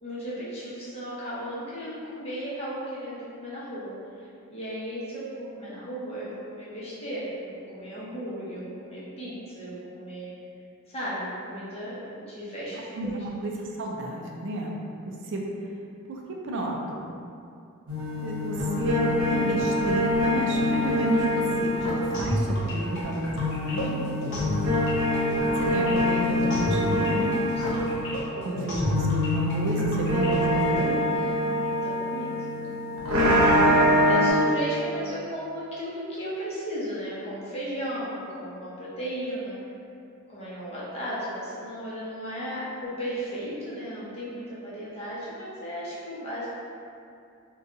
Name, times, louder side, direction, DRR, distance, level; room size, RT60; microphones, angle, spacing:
voice 1, 0.0-10.3 10.9-13.3 24.1-24.6 27.6-28.0 31.1-32.4 33.4-33.6 34.1-39.6 40.3-46.5, equal, 30° left, -9 dB, 0.8 m, -35 dB
voice 2, 12.9-14.8 15.0-15.5 16.1-17.2 18.2-24.0 25.6-27.4 28.3-31.0 33.5-33.8, right 1 dB, 55° right, -1 dB, 0.4 m, -31 dB
sound 1, 17.9-23.0 23.4-34.3, left 1 dB, 85° right, 0.7 m, -25 dB
sound 2, 22.1-30.8, equal, 60° left, 0.7 m, -32 dB
2.6 x 2.3 x 3.7 m, 2.5 s
head